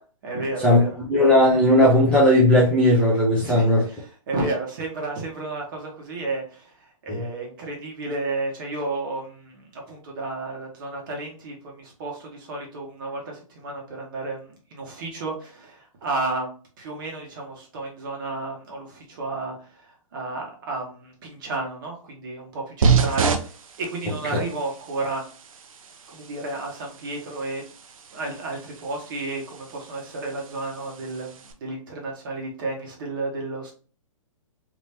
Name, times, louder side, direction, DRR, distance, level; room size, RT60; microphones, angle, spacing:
voice 1, 0.2-0.9 3.3-19.8 20.1-25.2 26.1-27.6 28.1-33.7, right 2 dB, 35° right, 0 dB, 1.2 m, -32 dB
voice 2, 1.1-3.8 7.1-7.2, left 1 dB, 5° left, -6 dB, 0.5 m, -17 dB
sound 1, 22.8-31.5, right 5 dB, 70° right, 0.7 m, -29 dB
3.4 x 2.9 x 2.8 m, 0.40 s
hypercardioid pair, 165°, 18 cm